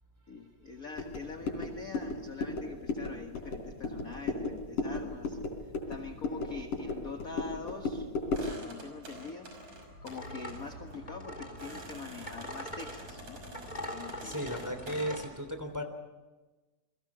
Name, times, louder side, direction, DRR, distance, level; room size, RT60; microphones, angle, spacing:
voice 1, 0.3-5.4 5.9-9.5 10.0-13.4 13.9-14.4, left 4 dB, 40° left, 4 dB, 1.3 m, -44 dB
sound 1, 1.0-8.6, left 3 dB, 80° left, 5.2 m, -35 dB
sound 2, 8.3-15.1, right 1 dB, 50° right, 6.8 m, -48 dB
sound 3, 10.1-15.3, left 1 dB, 15° left, 3.3 m, -43 dB
voice 2, 14.2-15.8, equal, 5° right, 6 dB, 2.6 m, -35 dB
29.5 x 22.0 x 6.1 m, 1.2 s
omnidirectional pair, 3.8 m